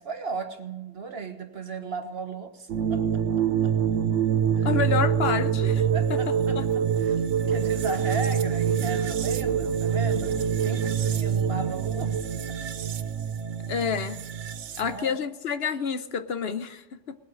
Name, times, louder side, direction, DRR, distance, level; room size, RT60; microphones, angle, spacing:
voice 1, 0.0-3.2 3.6-3.7 4.6-4.7 5.9-12.5 14.8-15.2, right 4 dB, 55° right, 1.6 m, -36 dB
sound 1, 2.7-15.0, right 8 dB, 80° right, 1.1 m, -25 dB
voice 2, 4.6-5.8 6.1-6.7 13.7-14.2 14.8-17.2, left 6 dB, 60° left, 1.0 m, -29 dB
19.5 x 7.9 x 6.3 m
omnidirectional pair, 1.2 m